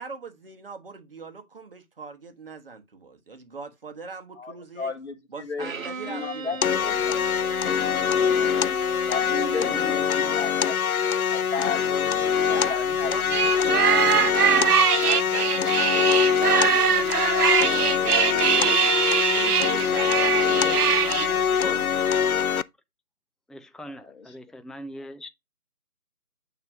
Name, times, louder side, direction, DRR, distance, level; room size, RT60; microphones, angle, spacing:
voice 1, 0.0-4.9 5.3-6.9 12.4-14.7 15.0-18.9 19.2-22.1, right 4 dB, 40° right, 1.3 m, -41 dB
voice 2, 4.4-5.7 6.0-7.8 9.1-10.8 11.3-13.1 24.0-24.1, left 4 dB, 45° left, 1.7 m, -34 dB
Bowed string instrument, 5.6-10.1, right 2 dB, 60° right, 1.0 m, -38 dB
sound 1, 6.6-22.6, left 7 dB, 70° left, 0.6 m, -24 dB
voice 3, 9.3-10.6 11.9-13.4 13.9-14.8 16.2-16.9 20.6-21.9 23.5-25.3, equal, ahead, 0.4 m, -43 dB
sound 2, 13.3-21.3, right 8 dB, 80° right, 0.6 m, -22 dB
9.1 x 3.2 x 4.7 m
figure-of-eight pair, 165°, 45 cm